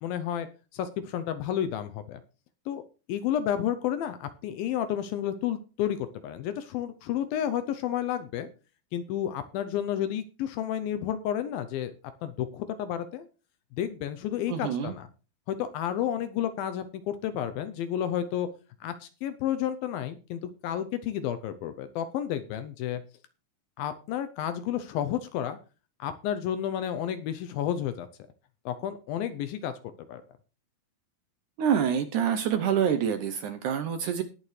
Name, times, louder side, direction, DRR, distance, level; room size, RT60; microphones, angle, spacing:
voice 1, 0.0-2.2 2.7-2.8 3.1-8.5 8.9-11.9 12.2-13.3 13.8-15.1 15.5-18.5 18.8-23.0 23.8-25.6 26.0-28.1 28.7-29.7 30.1-30.2, left 10 dB, 80° left, 10 dB, 2.4 m, -31 dB
voice 2, 14.5-14.9 31.6-34.2, right 8 dB, 75° right, 8 dB, 1.9 m, -26 dB
19.5 x 7.0 x 3.2 m, 0.34 s
omnidirectional pair, 4.4 m